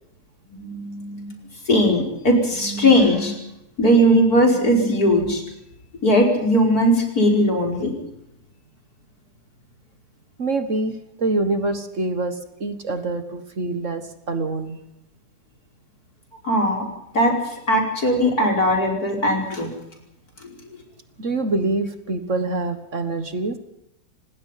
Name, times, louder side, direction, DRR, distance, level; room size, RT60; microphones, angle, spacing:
voice 1, 0.5-1.3 1.7-3.3 3.8-5.4 6.0-7.9 16.4-16.9 17.1-19.7 20.4-20.6, equal, 65° left, 2 dB, 5.6 m, -19 dB
voice 2, 10.4-14.8 21.2-23.6, right 2 dB, 50° right, 10 dB, 1.9 m, -25 dB
27.0 x 19.0 x 5.8 m, 0.83 s
omnidirectional pair, 1.8 m